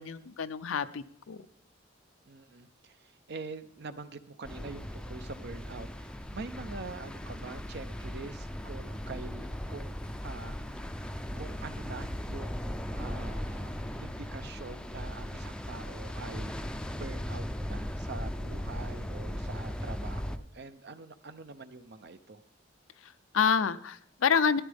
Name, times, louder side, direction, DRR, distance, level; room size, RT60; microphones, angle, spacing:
voice 1, 0.0-1.5 23.0-24.6, left 6 dB, 90° left, 13 dB, 0.5 m, -28 dB
voice 2, 2.3-10.0 10.2-10.9 11.3-13.7 14.0-16.5 16.9-22.4, right 3 dB, 55° right, 12 dB, 0.7 m, -45 dB
sound 1, 4.4-20.4, equal, 5° left, 0.5 m, -38 dB
13.0 x 10.5 x 3.5 m, 0.71 s
head